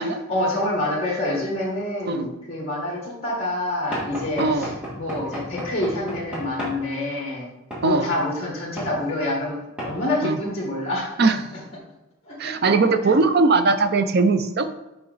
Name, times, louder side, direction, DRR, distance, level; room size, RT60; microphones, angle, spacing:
voice 1, 0.0-7.5 7.8-11.1 12.2-12.5 13.0-13.1, left 1 dB, 30° left, -3 dB, 1.6 m, -27 dB
Knock / Wood, 3.9-6.8 7.7-7.9 8.8-8.9 9.8-10.0, equal, 5° right, 1.8 m, -32 dB
voice 2, 4.4-4.7 7.8-8.1 10.2-10.4 11.2-11.4 12.4-14.7, right 3 dB, 50° right, 10 dB, 0.5 m, -20 dB
5.5 x 5.3 x 4.0 m, 0.99 s
head